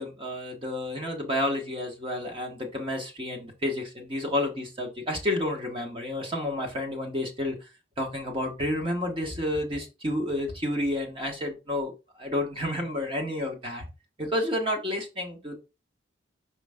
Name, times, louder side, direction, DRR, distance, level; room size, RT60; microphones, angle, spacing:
voice 1, 0.0-7.6 8.0-11.9 12.2-13.9 14.2-15.5, left 1 dB, 30° right, 2 dB, 1.3 m, -30 dB
5.3 x 5.0 x 3.6 m, 0.27 s
head